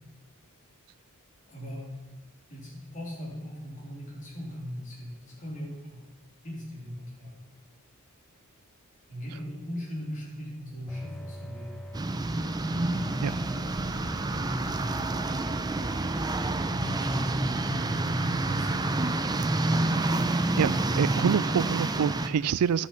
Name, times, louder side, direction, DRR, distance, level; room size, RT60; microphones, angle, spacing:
voice 1, 1.5-1.9 2.5-6.0 6.4-7.3 9.1-11.7 12.8-15.1 16.7-19.1, equal, 35° left, 3.1 m, -39 dB
sound 1, 8.2-8.3 9.4-9.5 10.6-10.7 11.0-11.1 11.6-21.7 22.1-22.3, right 1 dB, 40° right, 2.1 m, -50 dB
sound 2, 10.9-12.2 12.8-14.1 14.6-16.0 16.5-18.5 18.9-20.3, right 1 dB, 5° left, 0.8 m, -44 dB
sound 3, 11.9-22.3, right 2 dB, 20° right, 0.5 m, -28 dB
voice 2, 20.6-22.9, right 7 dB, 80° right, 0.3 m, -26 dB
11.5 x 5.8 x 5.8 m
head